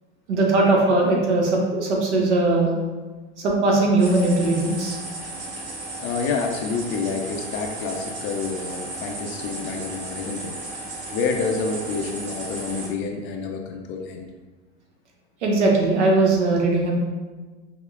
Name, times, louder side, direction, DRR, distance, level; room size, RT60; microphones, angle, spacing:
voice 1, 0.3-2.7 3.4-5.0 15.4-17.0, right 2 dB, 80° right, -1 dB, 1.0 m, -19 dB
sound 1, 4.0-12.9, right 2 dB, 50° right, 1.2 m, -35 dB
voice 2, 6.0-10.5 11.1-14.3, left 4 dB, 35° left, 3 dB, 0.4 m, -28 dB
5.6 x 2.1 x 2.3 m, 1.3 s
hypercardioid pair, 95°, 34 cm